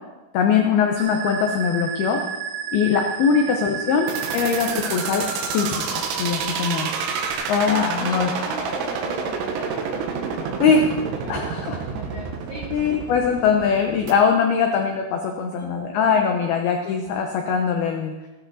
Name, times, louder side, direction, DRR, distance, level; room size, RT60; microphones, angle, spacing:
voice 1, 0.3-2.2 2.7-4.1 4.3-5.3 5.5-6.9 7.5-8.3 10.6-10.9 11.3-11.8 12.7-18.1, left 6 dB, 85° left, 3 dB, 2.2 m, -21 dB
Musical instrument, 1.0-7.3, right 7 dB, 75° right, 3.1 m, -32 dB
voice 2, 3.3-4.5 8.0-12.7 15.5-16.5, right 2 dB, 30° right, -5 dB, 2.4 m, -40 dB
sound 1, 4.1-14.1, right 5 dB, 90° right, 4.4 m, -29 dB
16.0 x 13.5 x 4.2 m, 1.1 s
omnidirectional pair, 5.9 m